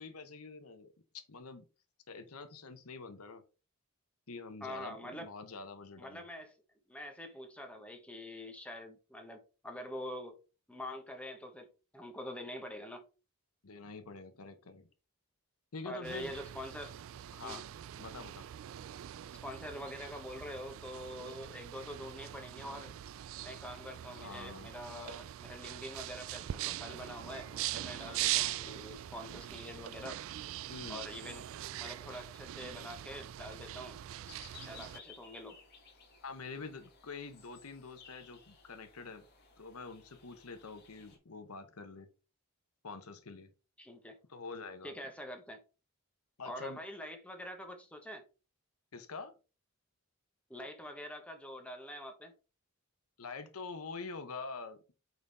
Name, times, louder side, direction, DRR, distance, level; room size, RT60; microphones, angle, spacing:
voice 1, 0.0-1.6 2.1-3.4 4.3-6.2 13.6-14.9 15.7-16.3 17.3-17.6 18.0-18.4 24.2-24.7 30.7-31.0 36.2-39.3 39.6-42.1 42.8-43.5 44.3-45.0 46.4-46.8 48.9-49.3 53.2-54.9, left 4 dB, 85° left, 1.0 m, -46 dB
voice 2, 4.6-5.3 6.0-6.5 6.9-10.4 10.7-13.0 15.8-16.9 17.4-17.6 19.4-22.9 23.4-30.2 30.9-31.5 31.8-34.0 34.5-35.6 43.8-44.2 44.8-45.6 46.4-48.2 50.5-52.3, left 1 dB, 5° left, 1.3 m, -45 dB
sound 1, 16.0-35.0, right 13 dB, 65° right, 0.3 m, -42 dB
sound 2, 34.3-41.2, left 5 dB, 50° left, 2.4 m, -58 dB
9.3 x 4.1 x 3.5 m
head